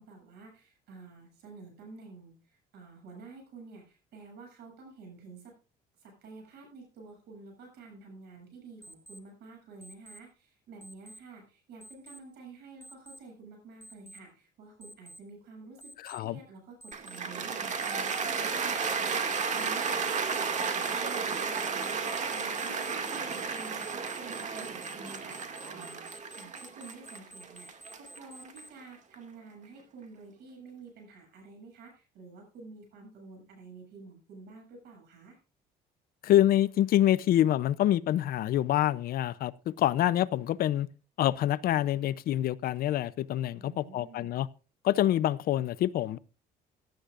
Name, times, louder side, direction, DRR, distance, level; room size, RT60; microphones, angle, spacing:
voice 1, 0.0-5.6 6.0-26.1 26.4-35.4 43.5-44.4, right 3 dB, 75° right, 7.8 m, -50 dB
Alarm, 8.8-9.2 9.8-10.2 10.8-11.2 11.8-12.2 12.8-13.2 13.8-14.2 14.8-15.2 15.8-16.2 16.8-17.2 17.8-18.2 18.8-28.7, right 1 dB, 15° left, 1.7 m, -50 dB
voice 2, 16.0-16.4 36.2-40.9 41.2-44.5 44.8-46.2, left 12 dB, 60° left, 0.6 m, -26 dB
Cheering / Applause, 16.9-29.1, right 5 dB, 45° right, 2.2 m, -33 dB
17.0 x 11.5 x 2.5 m
cardioid pair, 110°, 17 cm